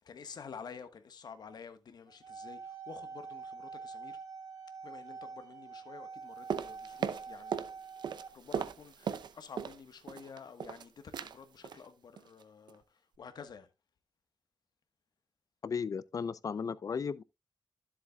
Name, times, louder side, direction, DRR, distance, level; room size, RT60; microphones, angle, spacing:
voice 1, 0.0-4.2 4.8-7.7 8.3-13.7, left 6 dB, 70° left, 1.3 m, -50 dB
sound 1, 2.1-8.3, right 5 dB, 55° right, 3.5 m, -46 dB
sound 2, 6.5-7.7 8.0-9.8 10.1-10.8 11.1-11.4 11.6-11.9 12.2-12.4 12.7-12.8, right 7 dB, 90° right, 0.6 m, -37 dB
voice 2, 15.6-17.2, left 6 dB, 50° left, 0.5 m, -35 dB
13.0 x 7.5 x 2.3 m
wide cardioid pair, 115°, 7 cm